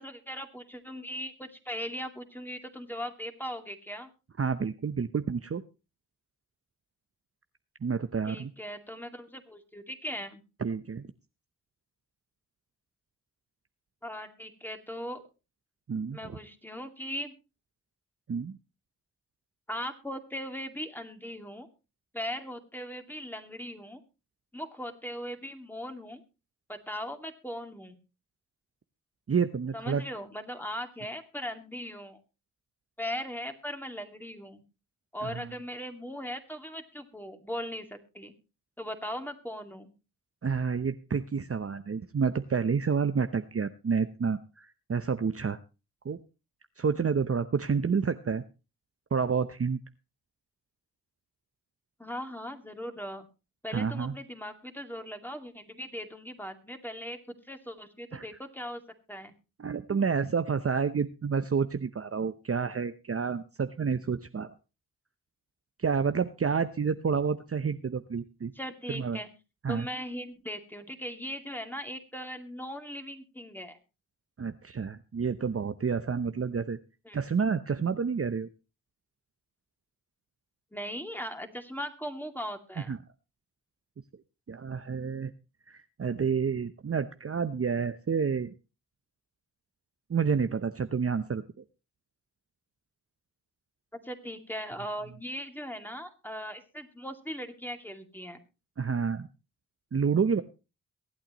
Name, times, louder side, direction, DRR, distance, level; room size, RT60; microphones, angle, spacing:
voice 1, 0.0-4.1 8.3-10.4 14.0-15.2 16.1-17.3 19.7-21.7 22.1-24.0 24.5-26.2 26.7-28.0 29.7-32.2 33.0-34.6 35.1-38.3 38.8-39.9 52.0-53.3 53.6-58.8 59.1-59.3 68.5-69.3 69.7-73.8 77.1-77.2 80.7-82.9 93.9-98.4, equal, 5° left, 5 dB, 2.4 m, -39 dB
voice 2, 4.4-5.6 7.8-8.5 10.6-11.1 15.9-16.4 18.3-18.6 29.3-30.0 35.2-35.5 40.4-45.6 46.0-46.2 46.8-48.4 49.1-49.8 53.7-54.1 58.1-58.3 59.6-64.5 65.8-68.5 68.9-69.2 69.6-69.9 74.4-76.8 77.1-78.5 82.8-83.0 84.5-85.3 85.7-88.5 90.1-91.6 98.8-99.3 99.9-100.4, right 6 dB, 35° right, 9 dB, 0.8 m, -29 dB
23.0 x 8.7 x 3.1 m, 0.31 s
supercardioid pair, 40°, 38 cm